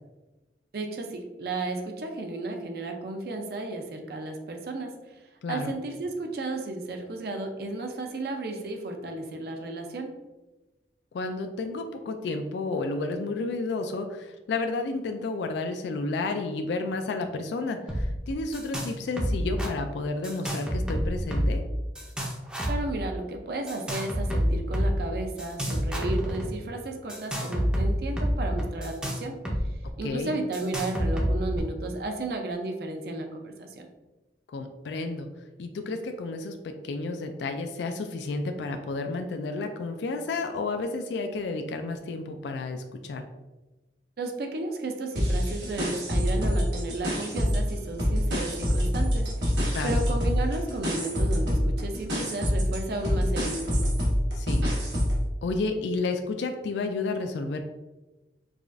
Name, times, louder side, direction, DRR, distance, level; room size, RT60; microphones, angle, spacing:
voice 1, 0.7-4.9 5.5-10.1 22.7-29.4 30.0-33.9 44.2-49.3 49.8-53.9, right 2 dB, 60° right, 4 dB, 0.5 m, -33 dB
voice 2, 5.4-5.7 11.1-21.6 30.0-30.4 34.5-35.3 35.6-43.2 49.7-50.0 54.3-54.7 55.4-57.6, left 3 dB, 75° left, 6 dB, 0.3 m, -31 dB
sound 1, 17.9-18.1 18.3-18.9 19.2-19.7 20.2-21.6 22.0-22.9 23.7-24.9 25.4-26.5 27.1-29.6 29.9-30.0 30.5-31.6, equal, 5° right, 0.5 m, -28 dB
sound 2, 45.2-47.7 48.0-55.2, equal, 85° right, 1.2 m, -26 dB
4.8 x 2.4 x 2.5 m, 1.1 s
head